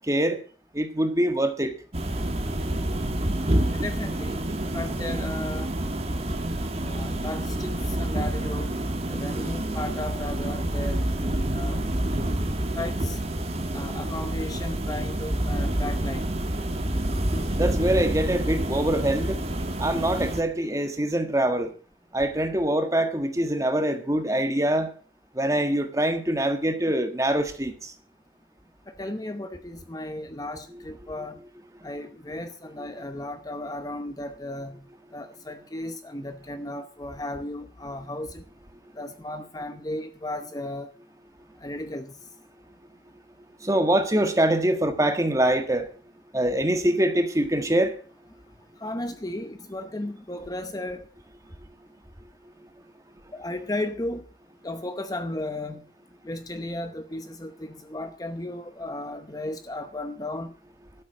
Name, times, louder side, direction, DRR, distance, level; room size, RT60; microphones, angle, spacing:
voice 1, 0.0-0.4 0.7-1.7 17.5-19.4 19.8-21.7 22.1-24.9 25.3-27.9 43.6-45.9 46.3-47.9, right 1 dB, 20° right, 1.5 m, -24 dB
sound 1, 1.9-20.4, right 1 dB, 35° right, 1.5 m, -28 dB
voice 2, 3.7-4.4 4.7-5.7 6.8-8.8 9.1-11.0 11.5-11.8 12.8-13.2 13.7-16.3 29.0-31.4 31.8-34.8 35.1-38.4 39.0-40.9 41.6-42.2 48.8-51.0 53.3-54.2 54.6-55.8 56.2-60.5, left 1 dB, 20° left, 0.8 m, -35 dB
13.0 x 7.7 x 7.7 m
head